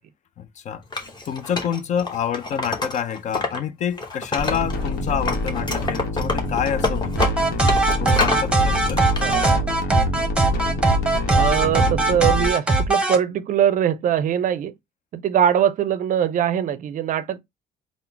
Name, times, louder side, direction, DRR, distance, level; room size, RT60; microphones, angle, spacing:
voice 1, 0.4-0.8 1.3-7.4 8.0-9.0, left 8 dB, 45° left, 0.4 m, -27 dB
Wood, 0.9-3.6 3.9-4.9 5.2-8.5 8.9-9.5, left 3 dB, 25° left, 1.0 m, -27 dB
sound 1, 4.4-12.5, left 2 dB, 70° left, 1.0 m, -27 dB
sound 2, 7.2-13.2, right 2 dB, 5° right, 0.8 m, -20 dB
voice 2, 9.2-9.7 11.3-14.7 15.1-17.4, right 9 dB, 50° right, 0.5 m, -22 dB
3.7 x 2.0 x 4.3 m
cardioid pair, 110°, 17 cm